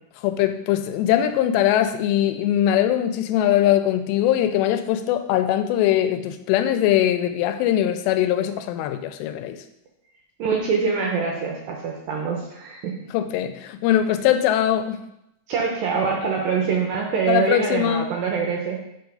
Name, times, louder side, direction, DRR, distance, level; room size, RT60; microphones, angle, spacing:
voice 1, 0.2-9.6 13.1-15.0 17.3-18.1, left 11 dB, 90° left, 9 dB, 2.7 m, -21 dB
voice 2, 10.4-13.0 15.5-18.8, right 5 dB, 75° right, 0 dB, 2.1 m, -24 dB
6.3 x 4.7 x 5.4 m, 0.81 s
omnidirectional pair, 4.9 m